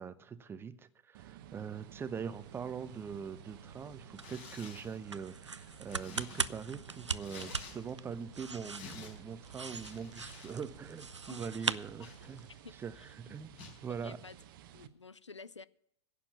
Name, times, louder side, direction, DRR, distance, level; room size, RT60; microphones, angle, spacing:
voice 1, 0.0-12.5 12.8-14.2, right 6 dB, 15° right, 0.7 m, -43 dB
sound 1, 1.1-14.9, right 10 dB, 50° right, 0.8 m, -55 dB
sound 2, 1.8-12.6, right 4 dB, 90° right, 0.4 m, -42 dB
Tearing, 4.1-5.0 5.5-8.1 8.4-10.6 10.8-11.1 11.6-12.7 13.5-13.8, left 5 dB, 40° left, 4.6 m, -52 dB
voice 2, 11.3-11.8 12.6-13.4 13.9-14.4 14.7-15.7, left 4 dB, 90° left, 0.4 m, -52 dB
11.5 x 8.5 x 7.2 m
figure-of-eight pair, 95°, 15 cm